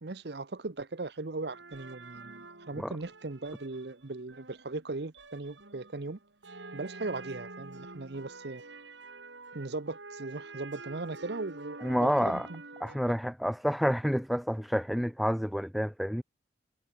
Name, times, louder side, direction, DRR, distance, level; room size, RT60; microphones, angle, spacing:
voice 1, 0.0-6.2 6.7-8.6 9.5-12.6 12.9-13.0, right 3 dB, 65° right, 0.9 m, -38 dB
sound 1, 1.5-13.0, right 3 dB, 90° right, 3.9 m, -48 dB
voice 2, 11.8-12.5 12.8-16.2, equal, ahead, 0.7 m, -29 dB
head